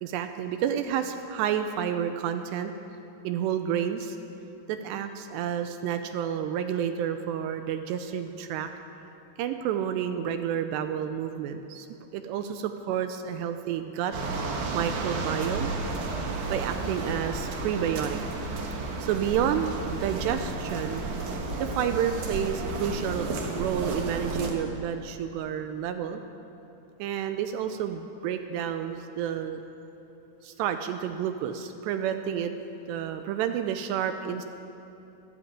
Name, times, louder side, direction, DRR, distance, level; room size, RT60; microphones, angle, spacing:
voice 1, 0.0-2.7 3.2-4.2 4.7-8.7 9.4-11.9 12.1-14.1 14.7-15.7 16.5-18.2 19.0-21.0 21.6-26.2 27.0-29.6 30.4-32.5 32.9-34.5, right 9 dB, 80° right, 8 dB, 2.6 m, -30 dB
sound 1, 14.1-24.5, right 3 dB, 60° right, 2.1 m, -32 dB
13.0 x 12.5 x 8.7 m, 2.9 s
omnidirectional pair, 5.4 m